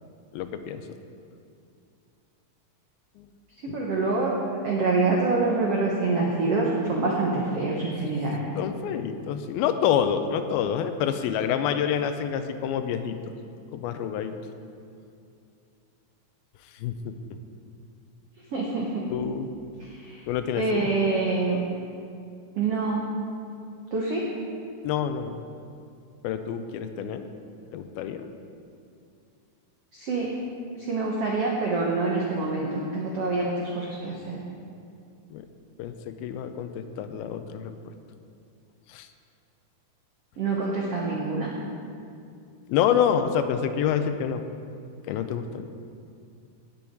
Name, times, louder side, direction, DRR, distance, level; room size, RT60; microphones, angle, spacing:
voice 1, 0.3-0.8 3.2-3.3 3.7-3.8 8.6-13.2 13.7-14.3 16.8-17.2 19.1-19.5 20.3-21.0 24.8-25.4 26.2-27.3 27.7-28.3 32.5-32.6 35.3-35.5 35.8-37.7 38.9-39.1 42.7-44.4 45.1-45.7, left 8 dB, 80° left, 8 dB, 2.4 m, -27 dB
voice 2, 3.6-4.4 4.6-8.5 18.5-19.0 19.8-20.2 20.6-21.6 22.6-23.0 23.9-24.3 29.9-30.3 30.8-34.4 40.4-41.5, right 3 dB, 85° right, -2 dB, 1.3 m, -26 dB
18.0 x 7.1 x 4.6 m, 2.4 s
omnidirectional pair, 4.5 m